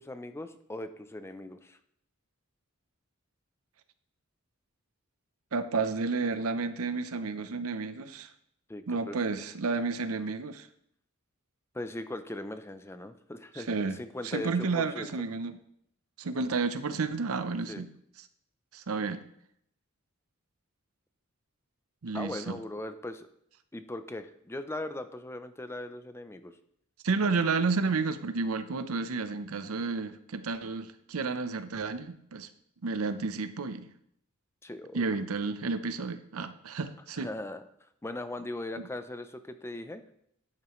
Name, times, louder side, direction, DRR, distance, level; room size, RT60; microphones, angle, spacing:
voice 1, 0.0-1.8 8.7-9.2 11.7-15.1 17.7-17.8 22.1-23.3 23.7-26.5 34.6-35.2 37.2-37.6 38.0-40.0, left 1 dB, 10° left, 10 dB, 0.5 m, -39 dB
voice 2, 5.5-8.3 8.9-10.7 13.6-15.6 16.2-17.9 18.7-19.2 22.0-22.6 27.0-32.5 32.8-33.9 34.9-37.3 38.8-38.9, right 4 dB, 80° right, 11 dB, 0.7 m, -31 dB
10.5 x 8.8 x 3.1 m, 0.71 s
head